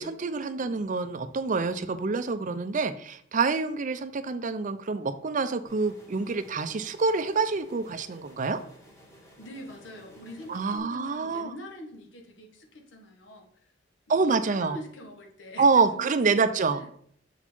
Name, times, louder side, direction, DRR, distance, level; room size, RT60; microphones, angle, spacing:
voice 1, 0.0-8.6 10.5-11.5 14.1-14.8 15.6-16.9, right 4 dB, 45° right, 11 dB, 0.5 m, -26 dB
sound 1, 5.6-10.8, equal, 15° left, 1.6 m, -54 dB
voice 2, 9.4-13.7 14.1-16.9, left 1 dB, 85° left, 2 dB, 1.4 m, -45 dB
6.9 x 4.4 x 4.3 m, 0.63 s
head